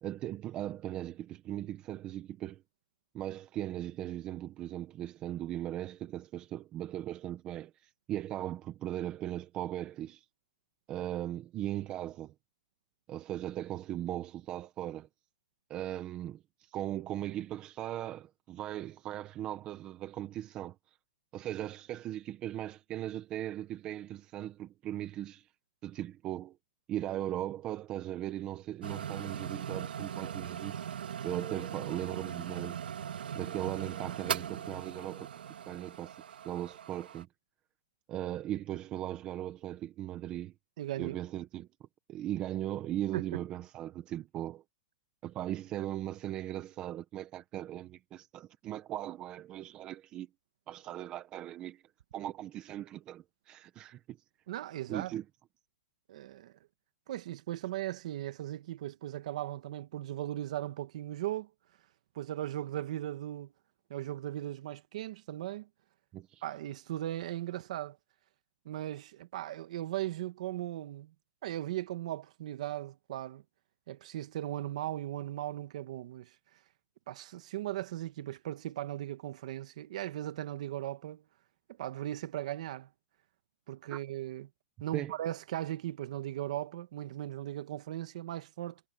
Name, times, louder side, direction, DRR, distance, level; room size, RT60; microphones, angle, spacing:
voice 1, 0.0-2.6 3.1-10.2 10.9-12.3 13.1-15.1 15.7-16.4 16.7-20.7 21.3-25.5 25.8-26.6 26.9-30.8 31.2-32.8 33.3-35.3 35.7-36.2 36.4-37.3 38.1-40.5 41.0-41.7 42.1-44.6 45.2-50.3 50.7-51.8 52.1-54.2 54.9-55.2 66.1-66.4 83.9-84.0 84.9-85.1, right 12 dB, 15° right, 1.1 m, -38 dB
sound 1, 28.8-37.2, right 8 dB, 80° right, 2.3 m, -39 dB
voice 2, 40.8-41.2 43.1-43.4 54.5-55.1 56.1-56.5 57.1-61.5 62.2-63.5 63.9-65.7 66.4-68.0 68.7-71.1 71.4-73.4 73.9-76.4 77.1-81.2 81.7-82.9 83.7-84.5 84.8-88.8, right 13 dB, 45° right, 1.8 m, -38 dB
hypercardioid pair, 175°, 5 cm